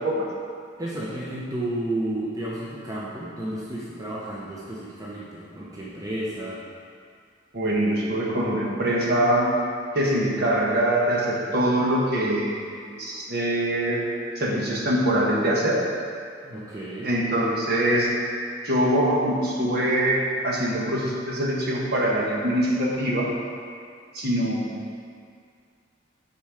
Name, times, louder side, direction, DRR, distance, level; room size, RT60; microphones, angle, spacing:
voice 1, 0.8-6.6 16.4-17.1, right 1 dB, 20° right, -6 dB, 0.8 m, -32 dB
voice 2, 7.5-9.6 9.9-12.7 13.0-14.0 14.3-15.8 17.0-18.2 18.6-23.3 24.1-24.9, right 1 dB, 50° right, -4 dB, 1.4 m, -23 dB
9.3 x 4.4 x 4.9 m, 2.2 s
head